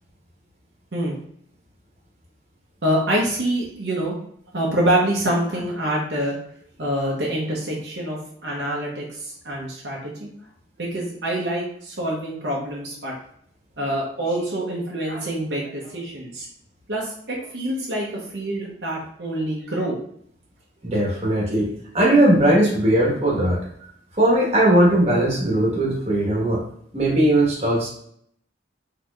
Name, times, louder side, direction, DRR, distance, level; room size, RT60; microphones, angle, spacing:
voice 1, 2.8-4.1 4.5-6.4 6.8-10.3 10.8-13.1 13.8-16.5 16.9-20.0, right 1 dB, 65° right, -4 dB, 0.8 m, -26 dB
voice 2, 20.8-21.7 21.9-23.6 24.2-26.6 26.9-27.9, right 1 dB, 35° right, -4 dB, 1.2 m, -18 dB
4.3 x 2.8 x 2.4 m, 0.66 s
head